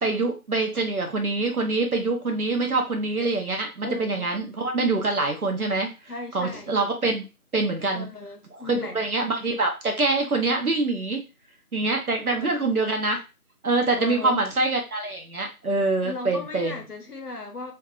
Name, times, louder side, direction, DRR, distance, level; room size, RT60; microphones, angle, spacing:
voice 1, 0.0-5.9 6.3-7.2 7.5-8.1 8.5-11.2 11.7-13.2 13.6-16.8, right 3 dB, 70° right, 0.8 m, -25 dB
voice 2, 3.8-4.3 6.1-6.7 7.9-9.0 12.3-12.7 14.0-14.4 16.0-17.7, left 3 dB, 80° left, 0.9 m, -36 dB
2.7 x 2.4 x 2.3 m
figure-of-eight pair, 175°, 46 cm